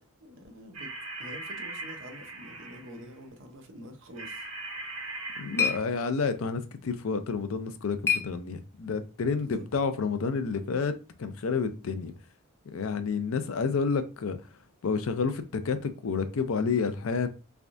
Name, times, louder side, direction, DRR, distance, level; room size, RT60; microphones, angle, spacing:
voice 1, 0.2-0.9 1.2-4.5 9.3-9.7, equal, 60° right, 0.8 m, -46 dB
sound 1, 0.7-3.1 4.2-5.8, right 2 dB, 85° right, 1.1 m, -40 dB
sound 2, 4.8-9.1, left 7 dB, 10° left, 0.3 m, -34 dB
voice 2, 5.4-12.1 12.7-14.4 14.8-17.3, left 5 dB, 70° left, 0.5 m, -30 dB
3.4 x 3.4 x 2.6 m
head